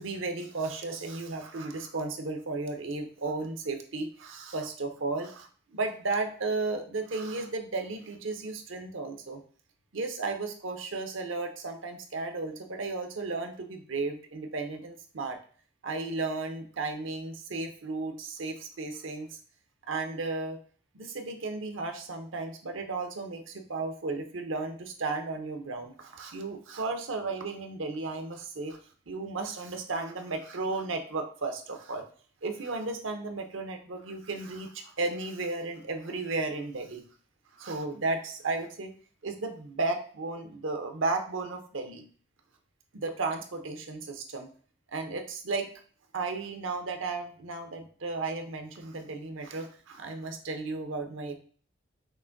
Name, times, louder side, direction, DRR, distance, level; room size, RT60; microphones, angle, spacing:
voice 1, 0.0-9.4 9.9-15.4 15.8-19.4 19.9-20.6 20.9-28.8 29.1-32.0 32.4-37.0 37.6-38.9 39.2-42.1 42.9-44.5 44.9-45.7 46.1-51.4, right 3 dB, 75° right, 5 dB, 0.7 m, -34 dB
6.0 x 2.5 x 2.6 m, 0.43 s
head